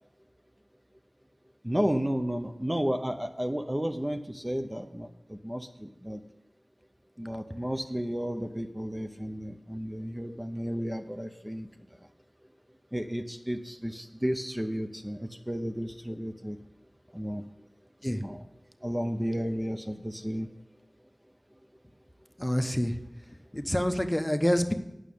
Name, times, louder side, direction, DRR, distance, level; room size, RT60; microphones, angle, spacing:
voice 1, 1.6-6.2 7.2-11.7 12.9-16.6 17.1-17.4 18.2-18.4 18.8-20.5, equal, 15° right, 5 dB, 0.7 m, -32 dB
voice 2, 22.4-23.0 23.5-24.7, equal, 15° left, 7 dB, 0.9 m, -27 dB
8.9 x 6.3 x 8.5 m, 0.91 s
wide cardioid pair, 40°, 0 cm